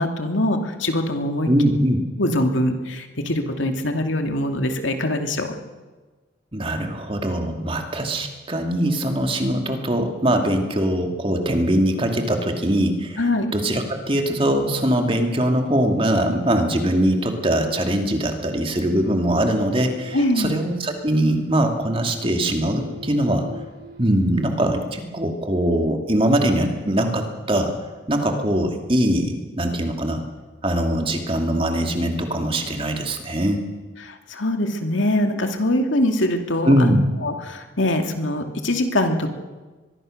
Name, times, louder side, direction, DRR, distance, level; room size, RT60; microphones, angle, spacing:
voice 1, 0.0-1.5 2.2-5.5 13.2-13.5 20.1-20.5 34.0-37.0 37.2-39.3, left 1 dB, 75° left, 5 dB, 2.5 m, -23 dB
voice 2, 1.5-2.0 6.5-13.2 13.5-23.5 24.0-27.7 28.1-30.2 30.6-33.6 36.6-37.1, right 1 dB, 25° right, 4 dB, 2.5 m, -22 dB
sound 1, 15.5-24.8, left 2 dB, 55° right, 7.0 m, -43 dB
23.5 x 22.0 x 6.6 m, 1.3 s
head